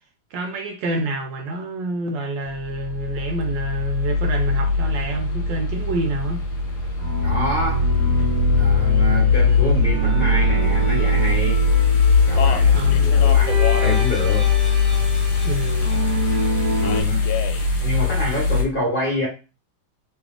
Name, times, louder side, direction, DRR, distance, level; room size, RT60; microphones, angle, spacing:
voice 1, 0.3-6.4 12.7-13.1 15.4-16.0, right 2 dB, 70° right, 1.3 m, -28 dB
sound 1, 2.4-18.6, left 4 dB, 55° left, 1.5 m, -20 dB
sound 2, 7.0-17.0, right 1 dB, 15° right, 0.8 m, -28 dB
voice 2, 7.2-7.9 8.5-11.7 12.2-13.5 13.8-14.5 16.8-17.3 17.8-19.3, left 1 dB, 30° left, 1.3 m, -27 dB
Speech, 11.9-16.1 16.8-17.7, left 7 dB, 80° left, 1.4 m, -31 dB
3.2 x 3.1 x 3.7 m
omnidirectional pair, 2.2 m